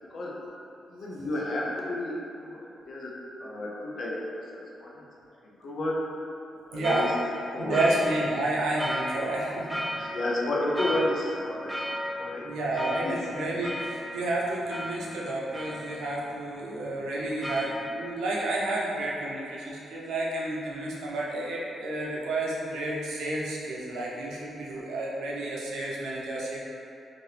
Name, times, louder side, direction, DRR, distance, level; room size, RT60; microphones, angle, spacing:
voice 1, 0.9-3.1 3.4-4.2 4.5-5.0 5.4-6.0 6.7-7.1 7.5-7.8 9.9-12.5 12.8-13.2, left 1 dB, 60° left, -4 dB, 0.6 m, -32 dB
voice 2, 6.7-7.1 7.5-10.2 12.4-26.6, right 2 dB, 80° right, -4 dB, 0.5 m, -30 dB
sound 1, 6.8-17.9, equal, 5° left, 0.4 m, -36 dB
2.8 x 2.6 x 3.2 m, 2.6 s
supercardioid pair, 60°, 0 cm